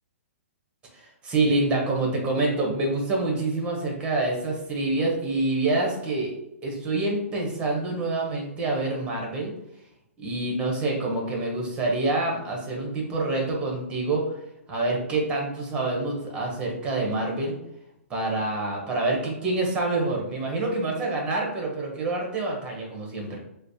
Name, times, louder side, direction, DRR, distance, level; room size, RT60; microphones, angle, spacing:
voice 1, 0.9-6.3 6.6-9.5 10.2-14.2 14.7-17.6 18.1-23.4, right 2 dB, 15° right, -1 dB, 1.0 m, -26 dB
3.2 x 2.1 x 4.0 m, 0.84 s
hypercardioid pair, 145°, 8 cm